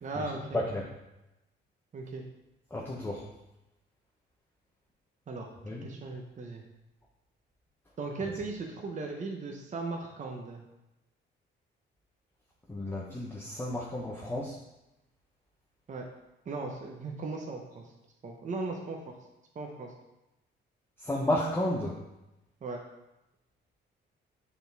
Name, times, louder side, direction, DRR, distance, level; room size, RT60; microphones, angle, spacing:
voice 1, 0.0-0.6 1.9-2.2 5.3-6.6 8.0-10.6 15.9-16.1 16.5-17.9 18.2-19.1 19.5-19.9 22.6-22.8, right 3 dB, 40° right, 1 dB, 0.9 m, -37 dB
voice 2, 2.7-3.2 5.6-5.9 12.7-14.6 21.0-22.0, left 1 dB, 10° left, -3 dB, 0.9 m, -32 dB
6.8 x 4.1 x 3.5 m, 0.94 s
cardioid pair, 90°, 20 cm